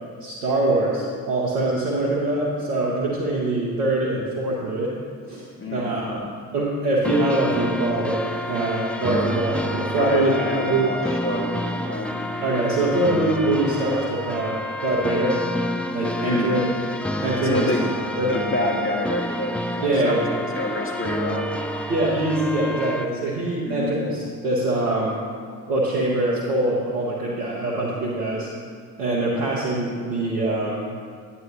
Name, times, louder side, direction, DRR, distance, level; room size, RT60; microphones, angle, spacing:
voice 1, 0.2-4.9 5.3-6.2 6.5-10.3 10.7-10.9 12.4-15.4 15.9-16.7 17.2-17.7 18.2-18.3 19.8-20.3 21.9-25.2 25.7-28.5 29.0-30.8, right 2 dB, 85° right, -5 dB, 1.1 m, -23 dB
voice 2, 5.6-6.2 10.0-12.2 16.2-16.5 17.4-17.9 18.2-21.5 23.6-24.0, left 1 dB, 30° left, -1 dB, 1.9 m, -27 dB
sound 1, 7.0-23.0, left 1 dB, 5° left, 0.5 m, -29 dB
9.5 x 9.0 x 2.9 m, 2.1 s
hypercardioid pair, 45°, 45 cm